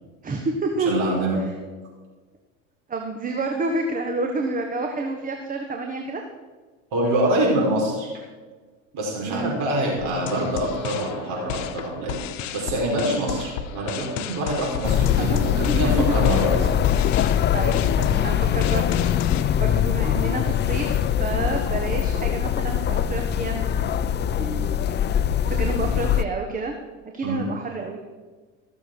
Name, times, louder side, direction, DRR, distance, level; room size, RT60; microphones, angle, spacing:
voice 1, 0.2-0.9 2.9-6.2 9.3-9.6 15.2-15.4 15.7-16.4 17.5-18.9 19.5-24.8 25.5-26.7 27.1-28.0, right 3 dB, 20° right, 3 dB, 1.3 m, -29 dB
voice 2, 0.8-1.4 6.9-8.1 8.9-12.2 12.5-16.5 27.2-27.5, right 1 dB, 55° right, -2 dB, 4.8 m, -25 dB
sound 1, 10.0-19.4, left 9 dB, 80° left, 1.0 m, -34 dB
sound 2, 14.8-26.2, left 9 dB, 30° left, 0.5 m, -22 dB
15.5 x 7.1 x 6.1 m, 1.4 s
supercardioid pair, 100°, 37 cm